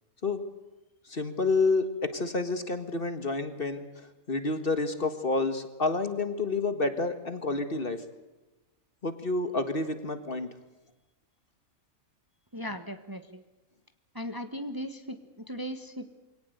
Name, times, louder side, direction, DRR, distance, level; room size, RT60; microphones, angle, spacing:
voice 1, 1.1-8.0 9.0-10.5, left 3 dB, 40° left, 10 dB, 1.8 m, -29 dB
voice 2, 12.5-13.4 14.1-16.1, equal, 15° right, 8 dB, 1.3 m, -37 dB
23.5 x 18.0 x 8.0 m, 1.1 s
omnidirectional pair, 1.5 m